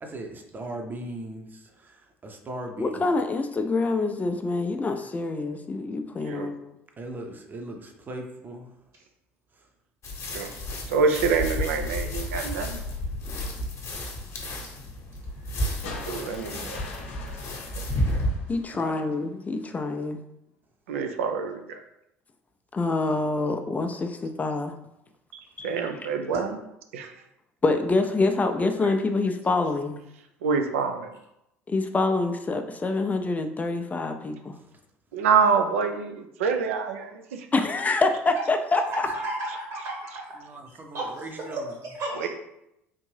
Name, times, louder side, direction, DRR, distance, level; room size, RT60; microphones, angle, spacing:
voice 1, 0.0-3.0 7.0-8.7 9.5-9.6 18.7-19.0 34.5-34.6 40.4-41.7, right 1 dB, 25° right, 3 dB, 0.7 m, -39 dB
voice 2, 2.8-6.7 13.3-13.4 18.5-20.2 22.7-24.7 25.6-25.7 27.6-30.0 31.7-34.6 37.5-38.8, left 3 dB, 20° left, 6 dB, 0.4 m, -26 dB
sound 1, 10.0-18.3, left 1 dB, 40° left, 0.9 m, -31 dB
voice 3, 10.9-12.8 16.1-16.8 20.9-21.8 25.3-26.6 26.9-27.1 30.4-31.1 35.1-37.5 42.2-42.3, right 5 dB, 75° right, 6 dB, 0.4 m, -26 dB
sound 2, 15.8-19.1 20.5-20.6, left 4 dB, 70° left, 0.6 m, -42 dB
voice 4, 39.1-40.4 40.9-41.1 41.5-42.3, right 1 dB, 55° right, -1 dB, 1.3 m, -33 dB
3.6 x 2.5 x 3.2 m, 0.84 s
figure-of-eight pair, 60°, 7 cm